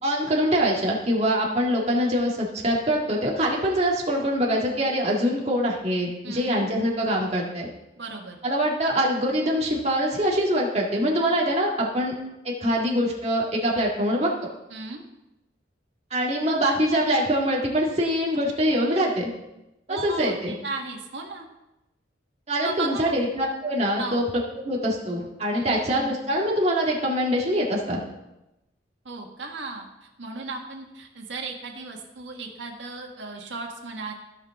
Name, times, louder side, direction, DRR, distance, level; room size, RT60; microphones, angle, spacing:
voice 1, 0.0-7.7 8.4-12.1 12.4-14.3 16.1-19.3 19.9-20.5 22.5-24.2 24.6-28.0, equal, 35° right, -2 dB, 1.9 m, -24 dB
voice 2, 6.2-6.7 8.0-8.4 14.7-15.0 19.9-21.5 22.6-23.2 24.0-24.2 25.5-25.8 29.0-34.1, right 3 dB, 85° right, 1 dB, 1.6 m, -35 dB
15.5 x 5.8 x 3.6 m, 0.94 s
head